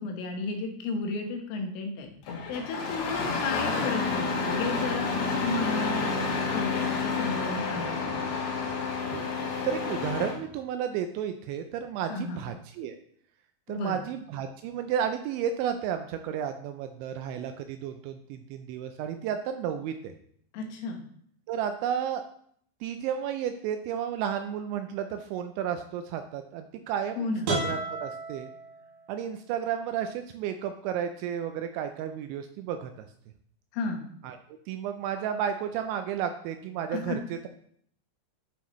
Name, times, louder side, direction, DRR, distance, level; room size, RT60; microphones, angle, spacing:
voice 1, 0.0-2.1 2.5-8.2 12.1-12.4 13.7-14.0 20.5-21.0 27.2-27.5 33.7-34.0 36.9-37.2, left 3 dB, 85° left, 2 dB, 3.6 m, -33 dB
Engine starting, 2.2-10.4, left 4 dB, 65° left, 3.2 m, -29 dB
voice 2, 9.1-13.0 13.7-20.1 21.5-22.2 22.8-28.5 29.1-33.1 34.2-34.4 34.7-37.5, right 8 dB, 85° right, 7 dB, 2.7 m, -32 dB
sound 1, 27.4-29.4, right 2 dB, 60° right, 3.7 m, -33 dB
11.5 x 5.8 x 3.1 m, 0.64 s
omnidirectional pair, 5.6 m